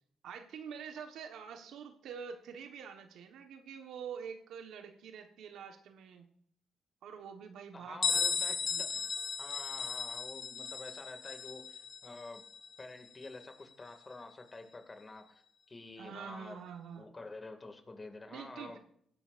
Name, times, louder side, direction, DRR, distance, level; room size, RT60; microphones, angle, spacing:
voice 1, 0.2-6.3 7.0-8.8 16.0-17.1 18.3-18.8, right 7 dB, 80° right, 5 dB, 1.3 m, -46 dB
voice 2, 7.7-9.1 9.4-12.5 12.8-15.4 15.7-16.6 17.0-18.8, left 2 dB, 25° left, 6 dB, 2.2 m, -48 dB
Bell, 8.0-13.5, left 6 dB, 50° left, 1.0 m, -36 dB
18.0 x 10.5 x 2.6 m, 0.66 s
cardioid pair, 90°, 0 cm